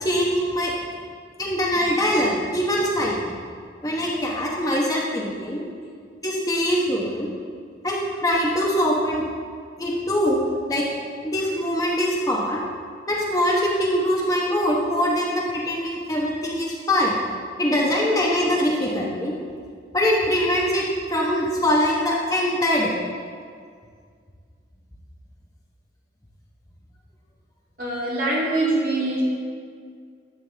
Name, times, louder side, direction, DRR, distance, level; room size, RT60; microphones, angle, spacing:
voice 1, 0.0-0.7 1.4-3.3 3.8-5.6 6.2-7.3 7.8-9.2 9.8-10.8 11.2-12.6 13.1-17.1 17.6-19.4 19.9-20.8 21.1-22.9, equal, 20° left, -3 dB, 1.0 m, -23 dB
voice 2, 27.8-29.2, right 2 dB, 50° right, -7 dB, 2.6 m, -23 dB
11.0 x 7.9 x 3.4 m, 2.1 s
head